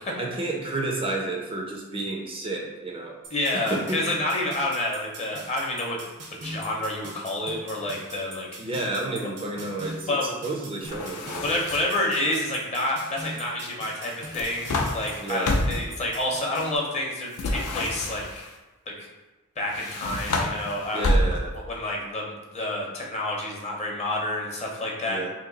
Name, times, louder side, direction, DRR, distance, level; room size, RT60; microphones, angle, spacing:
voice 1, 0.2-3.2 3.5-4.0 8.6-11.6 15.2-15.6 20.9-21.5 25.1-25.3, right 2 dB, 25° right, 0 dB, 0.4 m, -31 dB
sound 1, 3.2-16.8, right 2 dB, 85° right, 0.7 m, -42 dB
voice 2, 3.3-6.0 6.3-8.5 10.1-10.3 11.4-18.3 18.9-19.0 19.6-21.0 21.7-25.3, left 1 dB, 30° left, -2 dB, 0.7 m, -29 dB
sound 2, 10.8-12.1 14.1-15.9 17.3-18.5 19.7-21.7, left 1 dB, 75° left, 0.5 m, -28 dB
2.8 x 2.6 x 3.9 m, 1.1 s
head